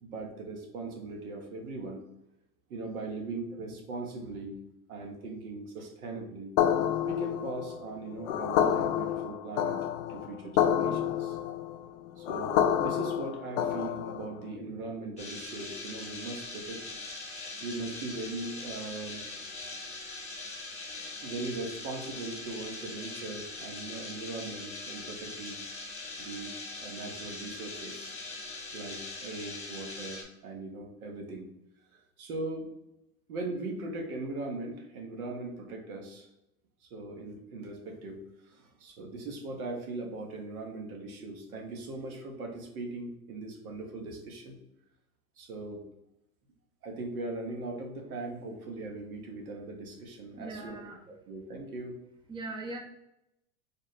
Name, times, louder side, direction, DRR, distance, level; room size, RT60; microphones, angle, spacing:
voice 1, 0.0-2.0 2.7-4.6 4.9-6.6 7.1-9.8 10.1-11.4 12.2-16.8 17.6-19.2 21.2-25.6 26.2-28.2 28.7-31.5 31.9-32.7 33.3-36.3 36.9-44.6 45.4-45.8 46.8-50.8 51.1-52.0, right 2 dB, 85° right, 2 dB, 1.0 m, -39 dB
sound 1, 6.6-14.4, left 9 dB, 65° left, 0.5 m, -29 dB
sound 2, 15.2-30.2, left 3 dB, 15° left, 0.9 m, -42 dB
voice 2, 50.4-51.1 52.3-52.8, right 2 dB, 10° right, 2 dB, 0.5 m, -40 dB
3.6 x 2.1 x 4.0 m, 0.84 s
hypercardioid pair, 110°, 42 cm